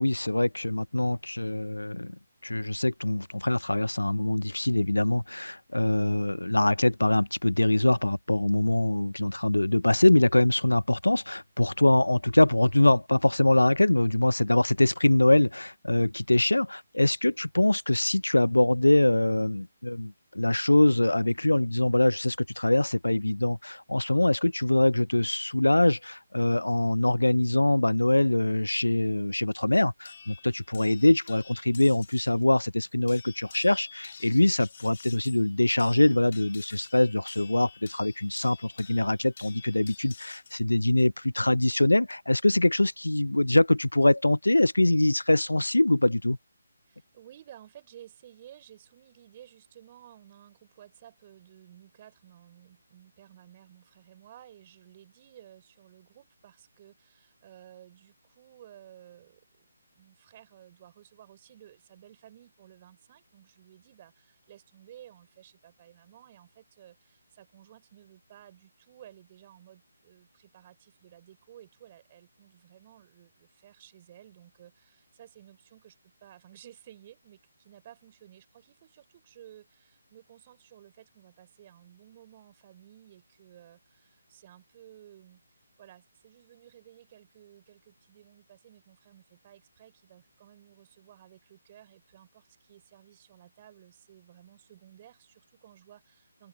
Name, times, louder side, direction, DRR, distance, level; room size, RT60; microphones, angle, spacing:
voice 1, 0.0-2.1 2.4-46.4, left 1 dB, 90° left, 0.6 m, -23 dB
sound 1, 30.1-32.4 33.1-40.6 41.7-42.1, left 6 dB, 50° left, 3.5 m, -50 dB
voice 2, 46.9-85.4 85.8-96.5, right 11 dB, 30° right, 5.3 m, -54 dB
open air
figure-of-eight pair, 150°, 0 cm